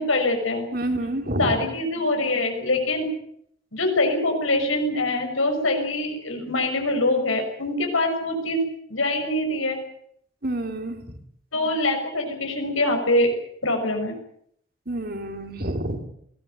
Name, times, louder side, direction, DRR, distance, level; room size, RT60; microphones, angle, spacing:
voice 1, 0.0-0.7 1.4-3.1 3.7-8.6 8.9-9.8 11.5-13.3 13.6-14.2, left 2 dB, 85° left, 3 dB, 6.2 m, -24 dB
voice 2, 0.7-1.6 10.4-11.0 14.9-16.0, right 1 dB, 50° right, 6 dB, 3.0 m, -28 dB
22.0 x 17.5 x 9.2 m, 0.69 s
head